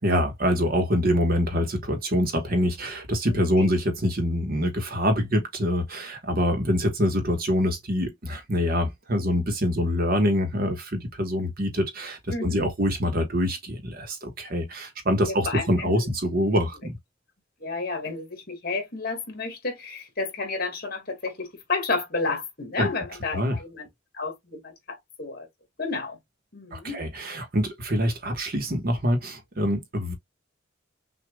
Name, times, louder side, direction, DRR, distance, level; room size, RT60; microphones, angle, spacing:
voice 1, 0.0-17.0 22.8-22.9 23.3-23.6 26.7-30.1, equal, 50° right, 1.3 m, -25 dB
voice 2, 3.3-3.8 12.3-12.7 15.3-16.1 17.6-23.9 24.1-25.5 25.8-26.2 26.5-27.0, left 3 dB, 50° left, 2.0 m, -31 dB
6.2 x 2.7 x 2.3 m
head